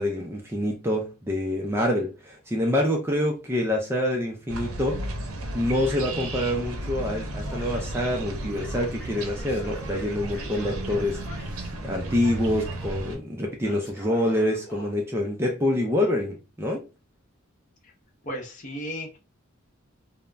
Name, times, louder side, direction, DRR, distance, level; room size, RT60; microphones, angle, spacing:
voice 1, 0.0-5.1 5.5-16.9, left 1 dB, 10° right, 0.4 m, -26 dB
sound 1, 4.5-13.2, right 1 dB, 80° right, 0.6 m, -34 dB
Male speech man speaking / Yell, 7.4-8.0 8.4-11.7 12.0-13.0 13.6-14.9, equal, 10° left, 1.0 m, -46 dB
voice 2, 18.2-19.2, equal, 35° left, 0.7 m, -34 dB
2.4 x 2.0 x 3.2 m
head